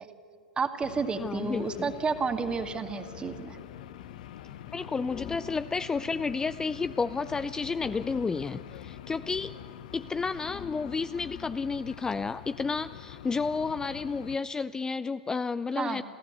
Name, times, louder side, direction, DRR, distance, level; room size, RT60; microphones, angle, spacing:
voice 1, 0.6-3.6 15.8-16.0, right 4 dB, 20° right, 7 dB, 1.9 m, -31 dB
sound 1, 0.8-14.4, left 11 dB, 65° left, 0.8 m, -45 dB
voice 2, 1.2-1.9 4.5-9.5 9.9-16.0, left 4 dB, 15° left, 13 dB, 0.4 m, -31 dB
sound 2, 2.4-2.8 5.1-6.0 7.7-8.8 10.4-11.8, left 8 dB, 35° left, 1.1 m, -47 dB
27.5 x 14.5 x 8.2 m, 2.5 s
hypercardioid pair, 95°, 5 cm